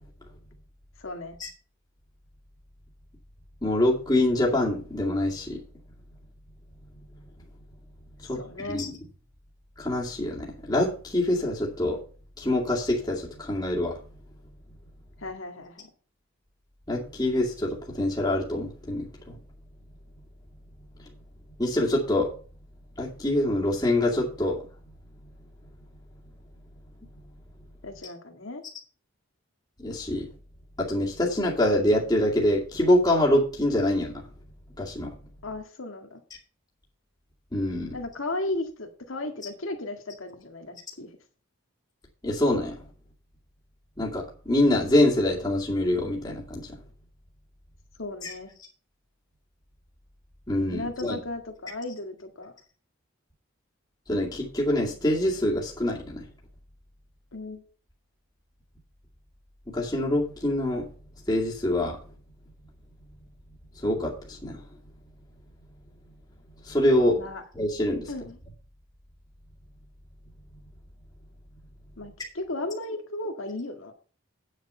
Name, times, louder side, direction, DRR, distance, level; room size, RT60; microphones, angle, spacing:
voice 1, 1.0-1.4 8.4-8.8 15.2-15.9 27.8-28.6 35.4-36.2 37.9-41.1 48.0-48.5 50.7-52.5 57.3-57.6 67.1-67.4 68.1-68.4 72.0-73.9, left 2 dB, 70° left, 4 dB, 1.8 m, -35 dB
voice 2, 3.6-5.6 8.3-8.4 8.7-8.9 9.8-12.0 12.4-14.0 16.9-19.4 21.6-22.3 23.0-24.6 29.8-30.3 30.8-34.2 34.8-35.1 37.5-38.0 42.2-42.7 44.0-46.7 48.2-48.3 50.5-51.2 54.1-56.2 59.7-60.9 61.3-62.0 63.8-64.6 66.7-67.2 67.5-68.1, left 1 dB, 20° left, -4 dB, 2.3 m, -25 dB
9.4 x 6.6 x 5.6 m, 0.39 s
head